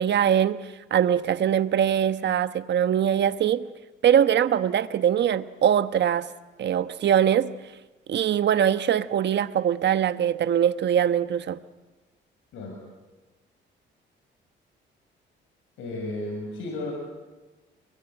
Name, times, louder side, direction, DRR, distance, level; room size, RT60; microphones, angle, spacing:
voice 1, 0.0-3.7 4.0-6.3 6.6-7.5 8.1-11.6, right 9 dB, 60° right, 1.2 m, -22 dB
voice 2, 12.5-12.8 15.8-16.9, left 2 dB, 85° left, 6.5 m, -33 dB
28.0 x 22.5 x 9.1 m
cardioid pair, 90°, 20 cm